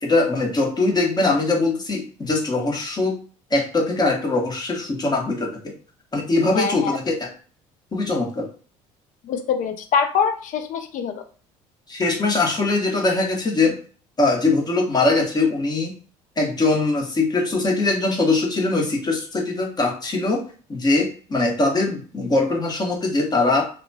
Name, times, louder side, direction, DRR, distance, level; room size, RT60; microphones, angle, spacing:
voice 1, 0.0-3.2 3.5-5.7 6.1-7.3 7.9-8.5 11.9-13.8 14.2-16.0 16.4-20.4 20.7-23.6, left 2 dB, 25° left, 1 dB, 1.1 m, -21 dB
voice 2, 6.5-7.0 9.2-11.2, left 6 dB, 55° left, 8 dB, 0.6 m, -24 dB
2.7 x 2.2 x 2.7 m, 0.40 s
hypercardioid pair, 65°, 16 cm